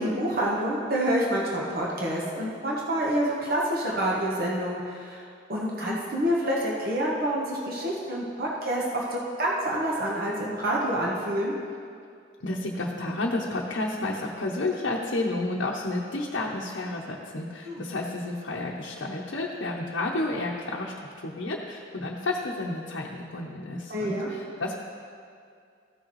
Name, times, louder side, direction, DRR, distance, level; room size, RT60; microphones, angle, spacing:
voice 1, 0.0-5.2 5.5-11.5 17.6-17.8 23.9-24.3, right 1 dB, 50° right, -4 dB, 1.2 m, -27 dB
voice 2, 12.4-24.8, left 2 dB, 75° left, -3 dB, 0.8 m, -31 dB
15.0 x 6.4 x 3.1 m, 2.3 s
head